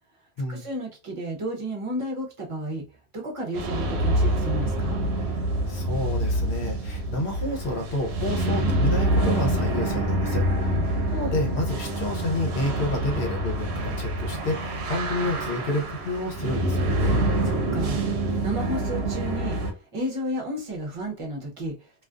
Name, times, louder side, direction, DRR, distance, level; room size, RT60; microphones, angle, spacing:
voice 1, 0.5-2.8 3.1-5.0 10.6-11.0 17.4-19.6 19.9-21.7, right 1 dB, 35° right, -1 dB, 0.7 m, -32 dB
sound 1, 3.5-19.7, right 1 dB, 75° right, 0.9 m, -26 dB
voice 2, 5.7-10.7 11.1-17.2, left 1 dB, 75° left, 2 dB, 1.0 m, -30 dB
2.5 x 2.3 x 2.4 m, 0.33 s
omnidirectional pair, 1.1 m